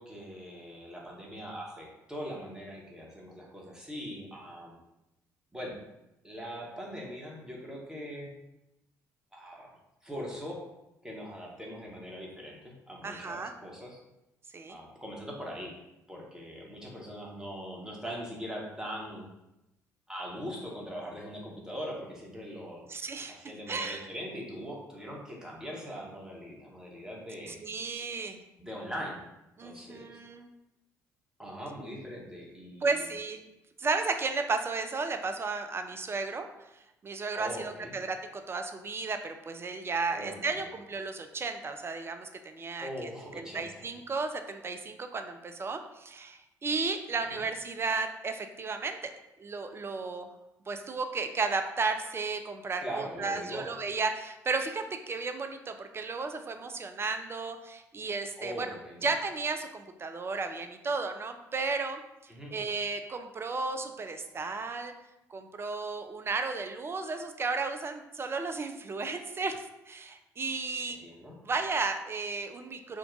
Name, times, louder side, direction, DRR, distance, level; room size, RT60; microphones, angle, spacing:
voice 1, 0.0-4.8 5.5-5.8 6.2-8.3 9.3-9.7 10.0-10.6 11.0-14.0 14.7-15.7 16.1-19.3 20.1-22.9 23.3-27.6 28.6-29.2 29.6-30.2 31.4-33.0 37.3-37.9 40.1-40.4 42.8-43.8 47.3-47.4 52.8-53.7 58.4-59.1 62.3-62.5 71.0-71.4, equal, 5° right, -3 dB, 1.1 m, -41 dB
voice 2, 13.0-13.5 14.5-14.8 22.9-23.4 23.7-24.1 27.5-28.4 29.6-30.5 32.8-33.4 33.8-36.5 36.8-43.1 43.3-49.1 49.4-50.3 50.7-58.7 59.0-64.9 65.3-71.0 71.4-73.0, right 4 dB, 25° right, 7 dB, 0.4 m, -34 dB
3.7 x 2.3 x 3.7 m, 0.91 s
figure-of-eight pair, 45°, 9 cm